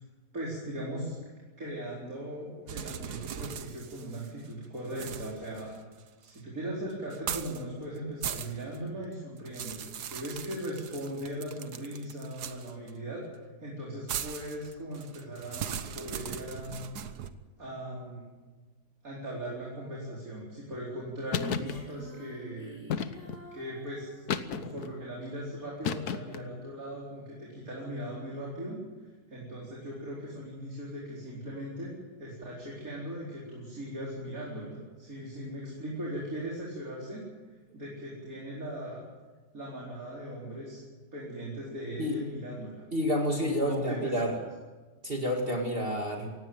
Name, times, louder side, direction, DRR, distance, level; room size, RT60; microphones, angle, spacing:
voice 1, 0.3-1.2 1.6-5.7 6.2-13.2 13.6-16.8 17.6-18.2 19.0-22.8 23.5-28.8 29.3-31.9 32.2-37.2 37.7-39.0 39.5-40.8 41.1-42.8 43.4-44.1 46.2-46.3, right 1 dB, 60° right, -5 dB, 5.0 m, -39 dB
sound 1, 2.7-4.5 4.9-6.4 7.1-7.6 8.0-8.8 9.1-12.9 14.1-17.3, right 9 dB, 85° right, 1.5 m, -39 dB
sound 2, 21.3-21.8 22.9-23.5 24.3-24.9 25.8-26.5, left 7 dB, 75° left, 1.6 m, -32 dB
Female singing, 21.3-24.8, equal, 40° left, 5.3 m, -46 dB
voice 2, 42.9-44.4 45.0-46.3, equal, 35° right, 1 dB, 2.2 m, -29 dB
18.5 x 16.5 x 9.2 m, 1.3 s
omnidirectional pair, 1.7 m